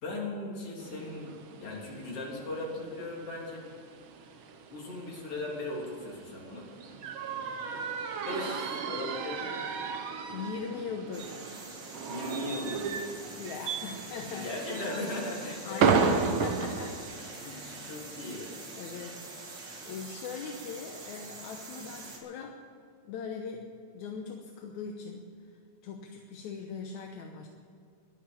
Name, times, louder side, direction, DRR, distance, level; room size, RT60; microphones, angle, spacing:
voice 1, 0.0-1.3 1.6-3.6 4.7-6.9 8.2-9.5 12.0-13.1 14.3-16.3 17.8-18.5, left 2 dB, 50° left, -3 dB, 4.1 m, -38 dB
sound 1, 0.8-17.9, right 5 dB, 60° right, 1.4 m, -34 dB
voice 2, 10.3-11.4 13.4-14.5 15.7-17.0 17.4-18.0 18.8-22.6 23.0-25.3 25.8-27.5, left 5 dB, 75° left, 3 dB, 2.2 m, -40 dB
sound 2, 11.1-22.2, right 3 dB, 40° right, 2.6 m, -45 dB
13.5 x 12.0 x 7.1 m, 2.4 s
omnidirectional pair, 3.5 m